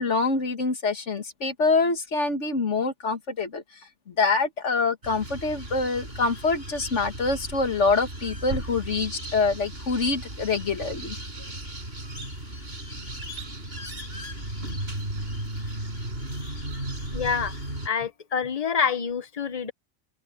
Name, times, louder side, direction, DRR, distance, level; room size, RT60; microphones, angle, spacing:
voice 1, 0.0-3.6 4.1-11.2, left 4 dB, 60° left, 2.2 m, -25 dB
sound 1, 5.0-17.9, right 1 dB, 50° right, 7.0 m, -35 dB
voice 2, 17.1-17.5 17.8-19.7, left 6 dB, 35° left, 0.9 m, -27 dB
open air
omnidirectional pair, 1.4 m